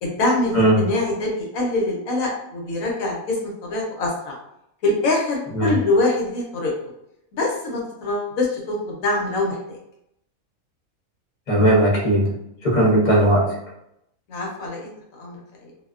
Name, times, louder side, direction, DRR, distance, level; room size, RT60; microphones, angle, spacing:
voice 1, 0.0-4.4 4.8-6.7 7.3-9.8 14.3-15.7, left 2 dB, 75° left, -1 dB, 1.0 m, -24 dB
voice 2, 11.5-12.3 12.6-13.6, right 1 dB, 40° left, -4 dB, 0.8 m, -17 dB
2.5 x 2.1 x 2.3 m, 0.79 s
omnidirectional pair, 1.5 m